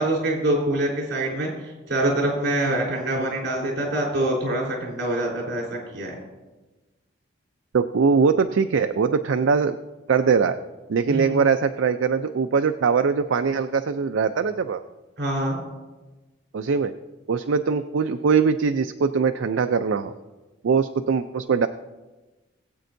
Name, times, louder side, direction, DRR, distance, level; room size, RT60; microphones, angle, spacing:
voice 1, 0.0-1.5 1.9-6.2 11.1-11.4 15.2-15.6, right 1 dB, 65° right, -2 dB, 3.8 m, -25 dB
voice 2, 7.7-9.7 10.1-10.6 10.9-14.8 16.5-16.9 17.3-20.1 20.6-21.7, right 5 dB, 80° right, 8 dB, 0.4 m, -21 dB
20.5 x 8.3 x 2.6 m, 1.2 s
head